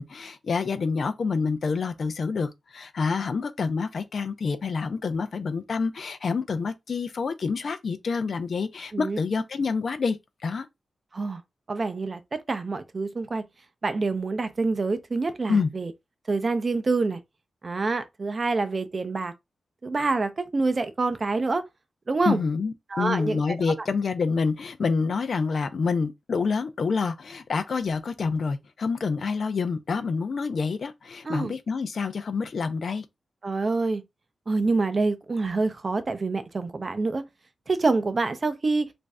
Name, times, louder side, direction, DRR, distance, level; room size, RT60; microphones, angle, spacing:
voice 1, 0.0-10.2 10.4-10.7 15.5-15.7 22.2-33.0, left 5 dB, 50° left, 0.4 m, -27 dB
voice 2, 11.7-13.4 13.8-15.9 16.3-17.2 17.6-19.3 19.8-21.6 22.1-22.4 22.9-23.4 31.3-31.5 33.4-34.0 34.5-37.2 37.7-38.9, right 3 dB, 35° right, 0.5 m, -26 dB
3.1 x 2.5 x 3.4 m
wide cardioid pair, 150°, 0 cm